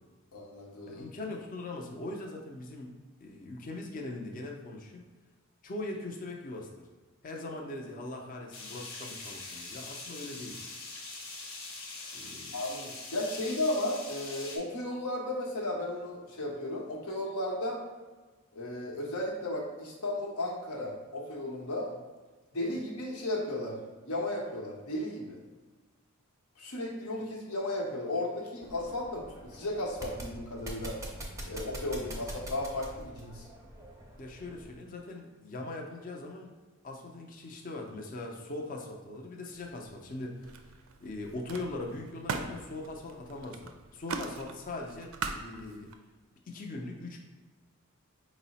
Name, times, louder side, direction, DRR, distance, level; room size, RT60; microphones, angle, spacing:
voice 1, 0.3-1.0 12.0-12.1 12.5-17.8 18.5-21.9 22.5-23.8 24.0-25.4 26.6-31.0 31.5-33.5, left 1 dB, 90° left, -1 dB, 0.9 m, -34 dB
voice 2, 0.9-2.9 3.2-5.0 5.6-6.7 7.2-10.6 12.1-12.6 34.2-36.5 36.8-40.5 41.0-45.9 46.5-47.2, left 2 dB, 40° left, 1 dB, 0.5 m, -41 dB
sound 1, 8.5-14.6, left 3 dB, 65° left, 0.8 m, -43 dB
sound 2, 28.6-34.7, right 1 dB, 15° right, 0.5 m, -44 dB
Camera, 39.5-40.1 40.4-45.9, right 4 dB, 65° right, 0.4 m, -41 dB
4.8 x 2.1 x 4.0 m, 1.3 s
head